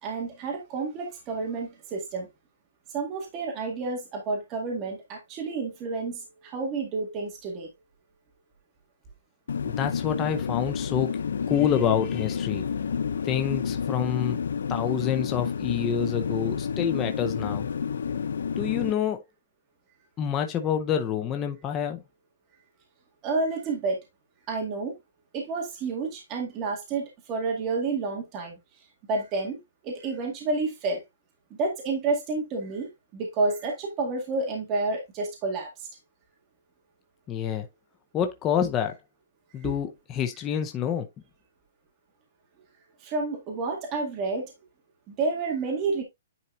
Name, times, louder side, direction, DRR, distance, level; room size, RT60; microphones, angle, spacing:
voice 1, 0.0-2.3 2.9-7.7 23.2-24.0 24.5-25.0 25.3-28.6 29.1-29.6 29.8-31.0 31.6-35.7 39.6-39.7 43.0-44.5 45.1-46.0, right 3 dB, 20° right, 1.9 m, -30 dB
sound 1, 9.5-18.9, left 6 dB, 85° left, 0.6 m, -30 dB
voice 2, 9.6-11.1 11.5-12.6 13.2-14.4 14.7-17.7 18.6-19.2 20.2-22.0 37.3-37.6 38.1-38.9 39.5-41.1, left 8 dB, 15° left, 0.6 m, -27 dB
9.9 x 4.4 x 2.6 m
hypercardioid pair, 175°, 0 cm